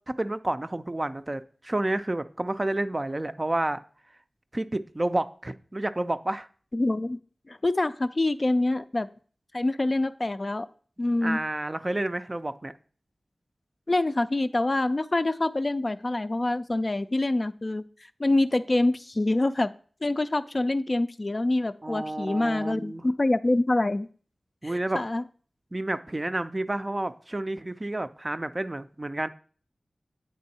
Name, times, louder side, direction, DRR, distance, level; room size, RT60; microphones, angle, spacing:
voice 1, 0.1-3.8 4.5-6.5 11.2-12.7 21.8-23.0 24.6-25.0 25.7-29.3, right 1 dB, 30° right, 11 dB, 0.4 m, -30 dB
voice 2, 6.7-7.2 7.5-9.1 9.5-10.7 11.0-11.4 13.9-17.8 18.2-19.7 20.0-24.1 24.6-25.2, left 2 dB, 40° left, 11 dB, 0.3 m, -26 dB
8.6 x 3.6 x 4.1 m, 0.43 s
wide cardioid pair, 55°, 0 cm